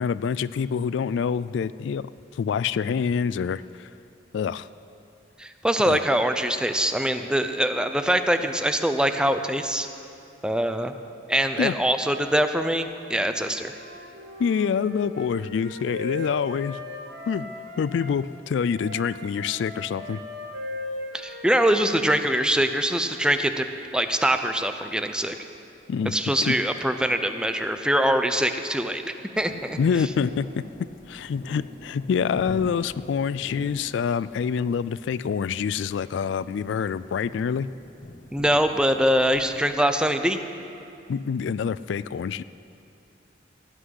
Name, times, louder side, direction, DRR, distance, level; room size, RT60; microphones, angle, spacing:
voice 1, 0.0-3.9 4.3-4.7 5.8-6.0 11.6-11.7 14.4-16.8 17.3-17.5 17.8-20.2 25.9-26.1 26.4-26.6 29.8-30.6 31.1-37.7 41.1-42.4, left 6 dB, 70° left, 17 dB, 0.3 m, -26 dB
voice 2, 5.4-9.9 10.4-10.9 11.3-13.7 21.1-23.6 23.9-25.4 26.1-30.1 38.3-40.4, right 1 dB, 5° right, 8 dB, 0.5 m, -23 dB
Wind instrument woodwind instrument, 13.5-18.1 18.7-23.6, left 2 dB, 65° right, 2.1 m, -38 dB
sound 1, 29.4-39.6, left 1 dB, 45° left, 1.1 m, -44 dB
16.5 x 6.1 x 9.8 m, 2.7 s
head